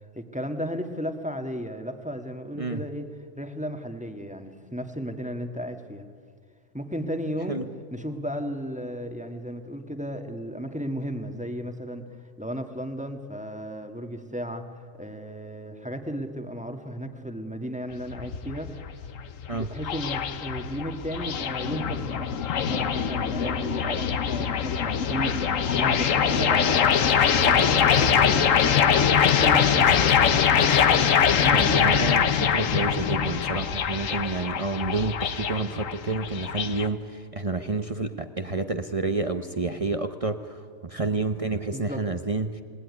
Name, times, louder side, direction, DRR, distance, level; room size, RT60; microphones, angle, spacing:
voice 1, 0.0-3.1 3.4-6.1 6.7-7.6 7.9-12.0 12.4-18.9 19.5-22.3 22.7-27.1 27.3-30.4 31.3-31.7 41.7-42.0, equal, 5° right, 6 dB, 1.6 m, -34 dB
sound 1, 17.9-36.9, left 7 dB, 70° left, 1.4 m, -23 dB
voice 2, 31.5-42.6, right 3 dB, 30° right, 8 dB, 0.9 m, -29 dB
28.0 x 18.5 x 9.7 m, 2.1 s
omnidirectional pair, 1.4 m